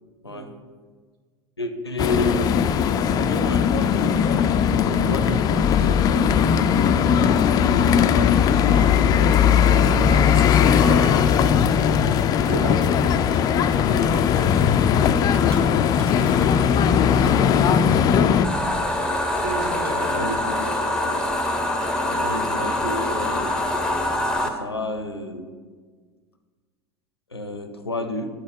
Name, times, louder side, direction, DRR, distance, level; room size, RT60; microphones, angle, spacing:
voice 1, 0.2-0.6 1.6-2.7 3.1-7.5 16.7-17.8 20.0-20.8 21.0-21.2 22.0-23.6 24.4-25.5 27.3-28.3, left 1 dB, 90° left, 8 dB, 0.6 m, -32 dB
sound 1, 2.0-18.5, left 8 dB, 30° left, 0.3 m, -18 dB
voice 2, 10.0-11.4 12.4-12.9 13.9-14.7 18.2-18.5 19.4-20.4, right 3 dB, 50° right, 3 dB, 1.2 m, -33 dB
sound 2, 12.7-16.8 17.1-21.1 21.4-22.5 22.9-23.5, equal, 85° right, 1.3 m, -45 dB
sound 3, 18.4-24.5, left 1 dB, 5° left, 0.7 m, -24 dB
8.1 x 4.2 x 5.1 m, 1.5 s
figure-of-eight pair, 80°, 13 cm